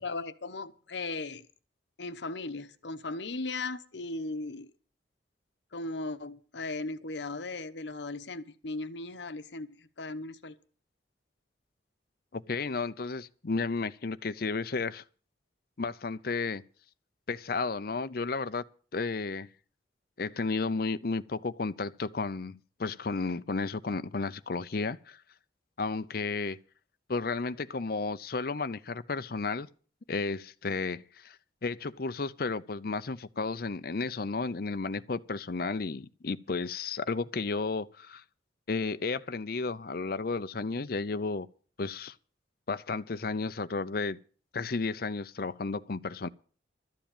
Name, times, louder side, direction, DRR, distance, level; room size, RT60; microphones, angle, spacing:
voice 1, 0.0-1.5 2.0-4.7 5.7-10.6, left 3 dB, 80° left, 1.0 m, -37 dB
voice 2, 12.3-15.0 15.8-16.6 17.3-18.6 18.9-19.5 20.2-25.2 25.8-26.6 27.1-29.7 30.1-31.4 31.6-38.2 38.7-41.5 41.8-42.1 42.7-44.2 44.5-46.3, left 4 dB, 55° left, 0.6 m, -33 dB
13.0 x 7.6 x 8.9 m
head